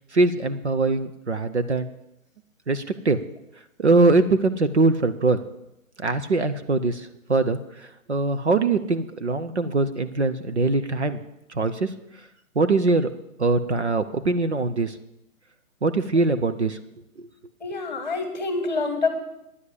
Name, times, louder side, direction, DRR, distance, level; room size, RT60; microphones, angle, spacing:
voice 1, 0.1-1.9 2.7-3.2 3.8-5.4 6.0-11.2 11.5-11.9 12.6-13.1 13.4-15.0 15.8-16.8 17.2-17.3, right 3 dB, 50° right, 10 dB, 0.7 m, -22 dB
voice 2, 17.6-19.1, left 3 dB, 30° left, 7 dB, 1.4 m, -26 dB
10.0 x 7.3 x 8.1 m, 0.85 s
hypercardioid pair, 180°, 44 cm